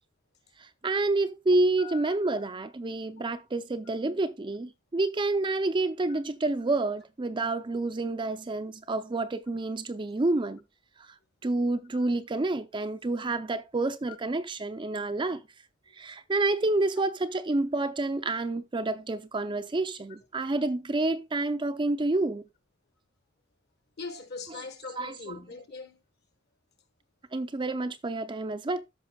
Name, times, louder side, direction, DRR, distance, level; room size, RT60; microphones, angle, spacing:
voice 1, 0.6-10.6 11.0-11.2 11.4-15.4 16.0-22.5 25.0-25.3 27.3-28.8, right 2 dB, 25° right, 0.5 m, -29 dB
voice 2, 1.8-2.1 6.1-6.2 24.0-26.0, left 4 dB, 55° left, 1.3 m, -41 dB
13.5 x 5.7 x 2.3 m
head